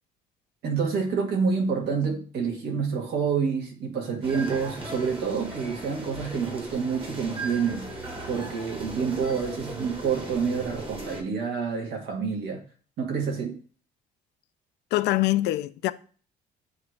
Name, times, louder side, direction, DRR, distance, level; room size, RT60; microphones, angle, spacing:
voice 1, 0.6-12.6 13.0-13.6, right 5 dB, 75° right, 1.9 m, -28 dB
sound 1, 4.2-11.2, right 2 dB, 30° right, 1.7 m, -37 dB
voice 2, 14.9-15.9, left 17 dB, 80° left, 0.5 m, -24 dB
8.8 x 3.1 x 4.7 m
cardioid pair, 110°, 17 cm